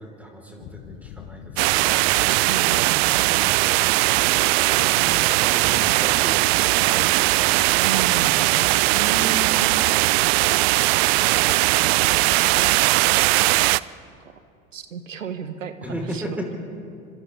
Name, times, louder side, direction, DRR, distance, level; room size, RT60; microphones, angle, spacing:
voice 1, 0.0-2.1 3.3-3.6 4.5-8.0 15.8-16.6, equal, 5° right, 0 dB, 5.4 m, -36 dB
sound 1, 0.6-2.8 3.1-3.6, left 14 dB, 40° left, 0.8 m, -43 dB
Fountain Water, 1.6-13.8, right 21 dB, 55° right, 0.5 m, -19 dB
voice 2, 2.5-3.3 4.9-5.9 7.8-10.8 11.7-12.8 13.5-14.4 14.7-16.4, right 6 dB, 80° right, 11 dB, 1.5 m, -35 dB
30.0 x 25.5 x 4.0 m, 2.5 s
figure-of-eight pair, 70°, 38 cm